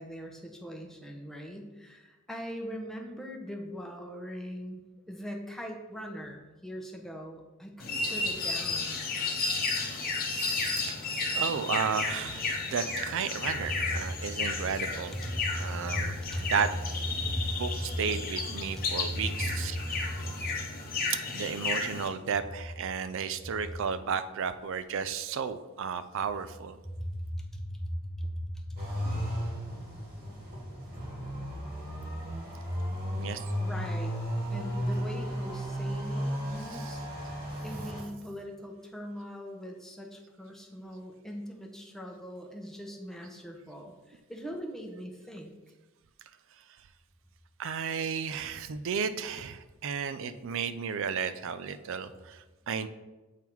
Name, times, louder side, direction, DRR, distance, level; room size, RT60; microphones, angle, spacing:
voice 1, 0.0-4.8 5.1-9.0 13.7-13.8 15.1-16.5 17.1-17.9 18.8-20.6 26.8-28.4 28.7-29.5 33.6-34.2 34.5-37.3 37.6-45.5, equal, ahead, 1 dB, 0.8 m, -39 dB
sound 1, 7.8-22.1, left 3 dB, 45° left, 0.9 m, -33 dB
voice 2, 10.2-11.0 11.3-15.1 15.6-16.7 17.6-19.8 21.1-26.8 33.2-33.4 35.0-35.1 36.6-37.0 47.6-52.9, right 6 dB, 65° right, 12 dB, 0.4 m, -33 dB
sound 2, 28.8-38.0, equal, 50° right, 2.0 m, -34 dB
7.4 x 3.6 x 4.6 m, 1.2 s
head